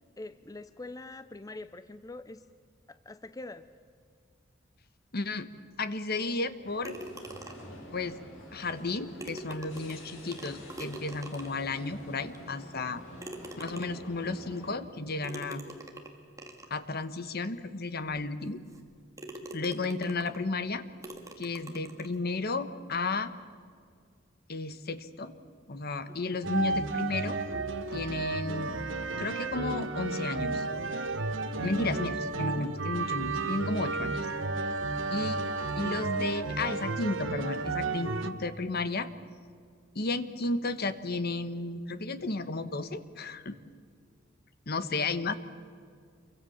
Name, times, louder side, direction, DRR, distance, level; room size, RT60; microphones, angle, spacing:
voice 1, 0.2-2.5 2.9-3.7 12.9-13.1 26.1-26.4, left 2 dB, 20° left, 12 dB, 0.5 m, -44 dB
voice 2, 5.1-5.5 5.8-7.0 7.9-8.2 8.5-13.0 13.6-15.6 16.7-18.6 19.5-20.8 21.4-23.3 24.5-25.3 25.7-27.4 27.9-28.8 29.2-30.7 31.5-34.2 35.1-35.4 35.8-39.1 39.9-43.6 44.7-45.3, left 3 dB, 55° left, 12 dB, 1.3 m, -33 dB
sound 1, 6.6-14.8, left 1 dB, 80° left, 8.0 m, -48 dB
sound 2, 6.8-7.8 8.8-8.9 9.2-11.7 12.3-12.4 13.2-14.1 15.2-16.8 17.4-17.5 18.1-18.2 18.7-18.9 19.2-20.5 21.0-22.2, right 1 dB, 15° right, 2.3 m, -44 dB
sound 3, 26.4-38.3, right 3 dB, 75° right, 1.4 m, -32 dB
28.0 x 23.5 x 7.2 m, 2.2 s
head